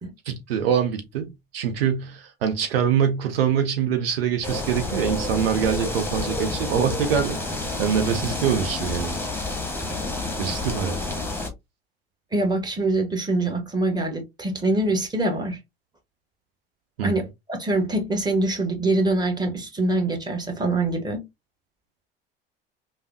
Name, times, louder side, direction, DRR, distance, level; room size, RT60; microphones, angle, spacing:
voice 1, 0.3-9.2 10.4-11.0 17.0-17.2, right 8 dB, 85° right, 0.6 m, -24 dB
sound 1, 4.4-11.5, left 2 dB, 5° left, 0.9 m, -29 dB
voice 2, 12.3-15.6 17.0-21.2, right 2 dB, 15° right, 1.1 m, -24 dB
3.3 x 2.1 x 2.6 m
hypercardioid pair, 70°, 29 cm